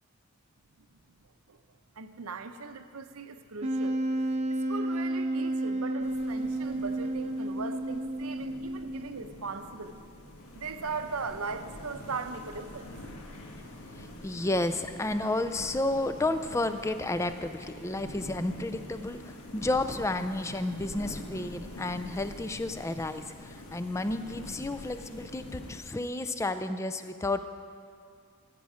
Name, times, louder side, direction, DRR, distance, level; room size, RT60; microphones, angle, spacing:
voice 1, 2.0-4.0 4.5-10.0 10.5-12.9, right 4 dB, 75° right, 8 dB, 0.7 m, -38 dB
Wind instrument woodwind instrument, 3.6-9.3, right 1 dB, 30° right, 0.6 m, -31 dB
sound 1, 6.0-25.8, left 1 dB, 85° left, 1.3 m, -46 dB
voice 2, 14.2-27.4, left 2 dB, 15° left, 9 dB, 0.4 m, -31 dB
14.5 x 8.3 x 4.9 m, 2.2 s
head